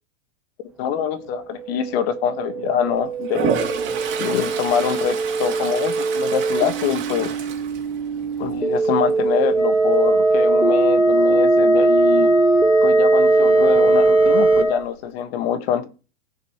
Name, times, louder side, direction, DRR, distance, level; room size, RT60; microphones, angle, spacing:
voice 1, 0.8-3.6 4.2-7.3 8.4-12.3 12.8-15.9, left 8 dB, 50° left, 1.7 m, -24 dB
sound 1, 1.4-14.6, right 4 dB, 5° right, 1.2 m, -21 dB
Toilet flush, 3.2-8.4 8.8-9.2 13.7-13.8 14.1-14.8, right 7 dB, 30° right, 2.9 m, -29 dB
Wind instrument woodwind instrument, 9.5-14.8, left 1 dB, 80° left, 3.7 m, -20 dB
16.0 x 7.0 x 3.2 m
hypercardioid pair, 135°, 38 cm